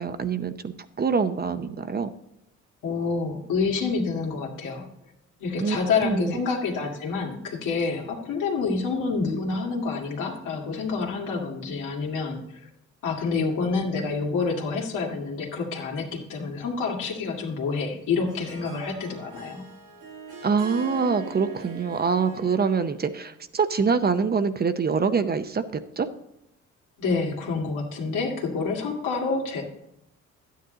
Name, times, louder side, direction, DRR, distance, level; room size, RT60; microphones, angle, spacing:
voice 1, 0.0-2.1 5.6-5.8 6.0-6.4 20.4-25.6 26.0-26.1, right 5 dB, 30° right, 11 dB, 0.7 m, -25 dB
voice 2, 2.8-4.8 5.4-12.7 13.0-19.6 22.3-22.4 27.0-29.6, left 4 dB, 85° left, 0 dB, 2.0 m, -28 dB
Harp, 17.9-23.2, right 3 dB, 80° right, 2.3 m, -42 dB
11.5 x 9.4 x 3.8 m, 0.81 s
cardioid pair, 90°, 30 cm